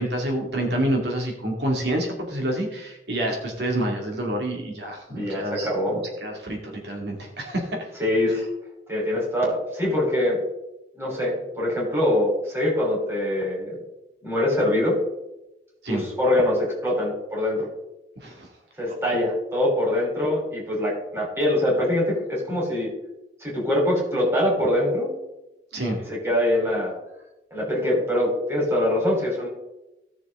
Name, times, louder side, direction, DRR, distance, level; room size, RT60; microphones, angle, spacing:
voice 1, 0.0-7.8 15.8-16.0 18.2-18.5 25.7-26.0, right 1 dB, 75° right, 1 dB, 2.4 m, -28 dB
voice 2, 5.1-6.0 8.0-8.4 8.9-10.4 11.0-13.8 14.2-15.0 15.9-17.7 18.8-22.9 23.4-25.1 26.1-26.9 27.5-29.5, left 1 dB, 15° right, -3 dB, 4.0 m, -23 dB
17.0 x 6.9 x 3.7 m, 0.94 s
head